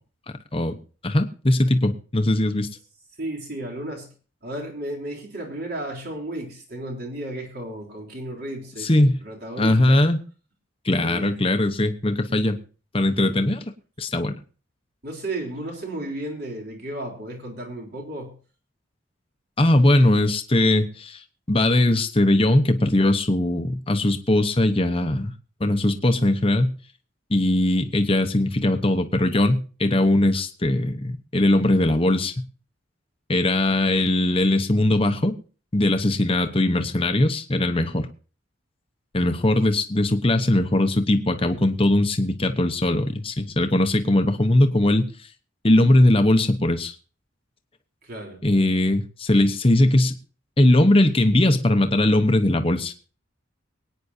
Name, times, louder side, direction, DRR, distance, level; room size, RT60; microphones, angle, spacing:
voice 1, 1.0-2.7 8.8-9.2 9.6-10.2 10.8-12.6 12.9-13.6 14.0-14.4 19.6-21.2 21.5-25.3 25.6-26.7 27.3-32.4 33.3-35.3 35.7-38.1 39.1-45.1 45.6-46.9 48.4-50.1 50.6-52.9, left 1 dB, 30° left, 7 dB, 1.0 m, -20 dB
voice 2, 3.2-4.1 4.4-10.0 11.0-11.4 13.2-13.3 15.0-18.4 48.0-48.4, right 1 dB, 50° right, 0 dB, 3.5 m, -34 dB
23.5 x 9.3 x 2.8 m, 0.37 s
head